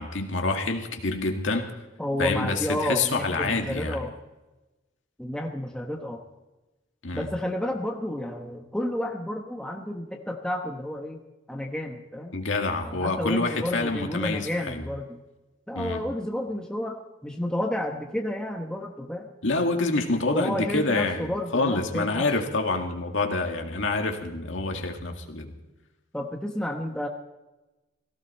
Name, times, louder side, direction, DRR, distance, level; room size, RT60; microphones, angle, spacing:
voice 1, 0.0-1.7 2.2-4.0 7.0-7.3 12.3-14.9 15.8-16.0 19.4-25.5, left 3 dB, 80° left, 3 dB, 2.0 m, -27 dB
voice 2, 2.0-4.1 5.2-6.2 7.1-11.2 11.5-12.3 12.8-15.2 15.7-19.3 20.3-22.3 26.1-27.1, left 1 dB, 5° left, 2 dB, 1.0 m, -31 dB
17.5 x 15.5 x 4.3 m, 1.1 s
head